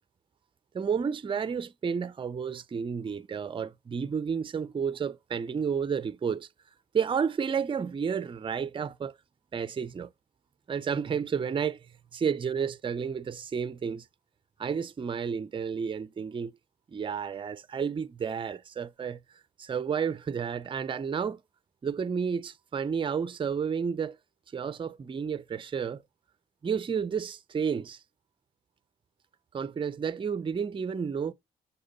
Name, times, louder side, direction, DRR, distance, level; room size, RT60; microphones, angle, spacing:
voice 1, 0.7-6.5 6.9-9.2 9.5-10.1 10.7-11.9 12.1-14.1 14.6-16.5 16.9-19.2 19.6-21.4 21.8-24.2 24.5-26.0 26.6-28.0 29.5-31.3, right 6 dB, 25° right, 0.4 m, -31 dB
6.5 x 4.3 x 3.9 m
cardioid pair, 85°, 19 cm